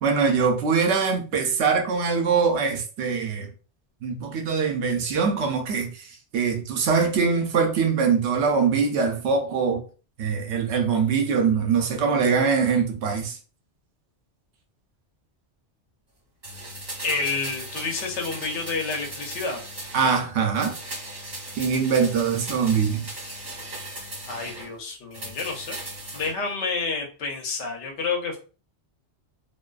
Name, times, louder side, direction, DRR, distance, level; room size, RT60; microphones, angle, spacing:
voice 1, 0.0-3.5 4.0-6.1 6.3-9.8 10.2-13.4 19.9-20.7 21.6-23.0, right 5 dB, 75° right, 0.9 m, -23 dB
sound 1, 16.4-20.3 20.5-24.7 25.1-26.3 26.6-26.7, right 1 dB, 35° right, 1.2 m, -37 dB
voice 2, 17.0-19.6 24.3-25.8 26.1-28.4, left 4 dB, 80° left, 1.0 m, -29 dB
2.4 x 2.3 x 2.3 m
omnidirectional pair, 1.2 m